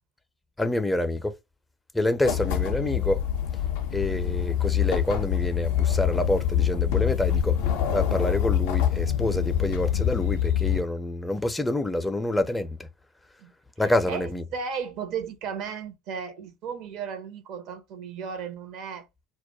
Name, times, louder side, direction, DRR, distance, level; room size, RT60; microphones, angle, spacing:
voice 1, 0.6-1.3 1.9-3.2 3.9-7.6 7.9-12.8 13.8-14.4, left 1 dB, 10° left, 0.4 m, -27 dB
sound 1, 2.2-10.8, left 9 dB, 70° left, 0.4 m, -25 dB
voice 2, 13.8-19.1, right 6 dB, 60° right, 0.6 m, -35 dB
2.2 x 2.1 x 2.8 m
hypercardioid pair, 70°, 0 cm